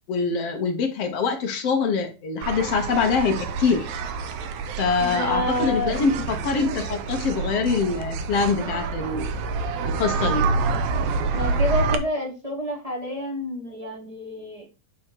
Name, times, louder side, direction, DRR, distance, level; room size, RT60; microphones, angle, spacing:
voice 1, 0.1-3.9 4.8-9.4 9.8-10.5, left 5 dB, 60° left, 4 dB, 1.8 m, -24 dB
sound 1, 2.4-12.0, right 4 dB, 70° right, 1.9 m, -27 dB
voice 2, 5.0-6.0 11.3-14.7, left 1 dB, 30° right, -2 dB, 0.6 m, -29 dB
8.8 x 3.6 x 4.5 m, 0.31 s
omnidirectional pair, 3.7 m